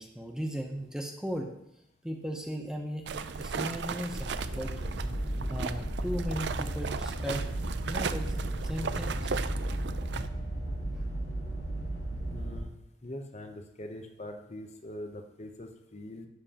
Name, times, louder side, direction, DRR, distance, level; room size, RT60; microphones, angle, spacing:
voice 1, 0.0-1.5 2.0-4.7 5.5-7.4 7.9-8.3 8.6-9.4, equal, 5° right, 2 dB, 0.7 m, -36 dB
sound 1, 3.1-10.3, right 5 dB, 60° right, 0.4 m, -36 dB
sound 2, 4.1-12.6, right 1 dB, 90° left, 3.2 m, -35 dB
voice 2, 12.3-12.7 13.0-16.3, left 1 dB, 35° left, 5 dB, 0.8 m, -43 dB
11.5 x 7.6 x 2.9 m, 0.81 s
head